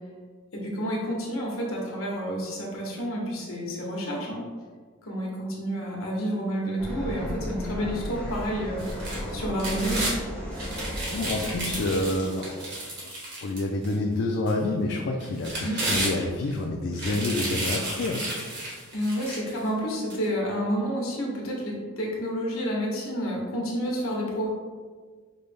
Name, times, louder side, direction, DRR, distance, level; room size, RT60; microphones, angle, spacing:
voice 1, 0.5-4.4 5.0-10.3 15.6-15.8 18.9-24.5, equal, 70° left, -2 dB, 1.0 m, -30 dB
sound 1, 6.8-11.9, equal, 5° left, 0.6 m, -34 dB
sound 2, 8.8-10.2 10.5-13.9 14.5-14.6 15.2-16.5 16.9-19.6 20.1-20.2, right 1 dB, 50° right, 1.2 m, -32 dB
voice 2, 11.1-12.9 13.4-18.5, left 2 dB, 55° left, 0 dB, 0.3 m, -28 dB
5.2 x 2.0 x 3.3 m, 1.6 s
head